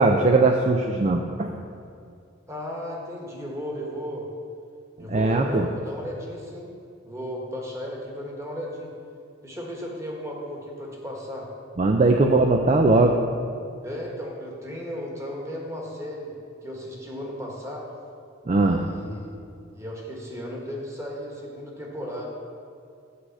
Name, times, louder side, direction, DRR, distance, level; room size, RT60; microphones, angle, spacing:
voice 1, 0.0-1.6 5.1-5.7 11.8-13.2 18.5-18.8, right 2 dB, 35° right, 3 dB, 0.4 m, -20 dB
voice 2, 2.5-4.3 5.0-6.7 7.0-8.9 9.4-11.5 12.9-13.0 13.8-16.3 16.6-17.9 18.6-19.3 19.7-22.3, equal, 15° right, -2 dB, 1.4 m, -35 dB
8.5 x 4.9 x 7.5 m, 2.4 s
head